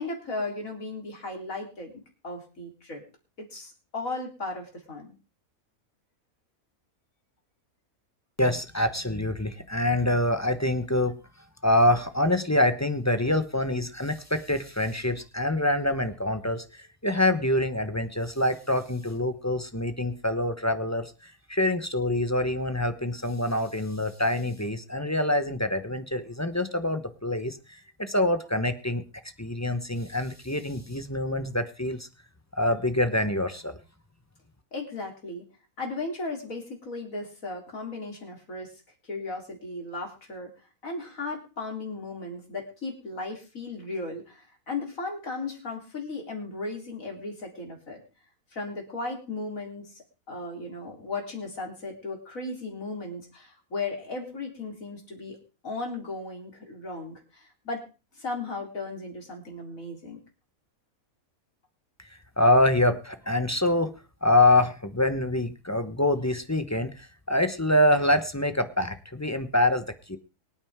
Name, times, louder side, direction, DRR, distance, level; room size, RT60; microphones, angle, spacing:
voice 1, 0.0-1.9 2.2-3.0 3.4-5.2 34.7-35.4 35.8-38.7 39.0-40.5 40.8-48.0 48.5-55.4 55.6-57.9 58.2-60.2, left 3 dB, 65° left, 1 dB, 4.1 m, -36 dB
voice 2, 8.4-11.2 11.6-27.6 28.0-29.0 29.4-32.1 32.6-33.8 62.4-63.9 64.2-70.2, left 1 dB, 15° left, 9 dB, 0.8 m, -25 dB
24.0 x 9.0 x 3.6 m, 0.32 s
omnidirectional pair, 1.5 m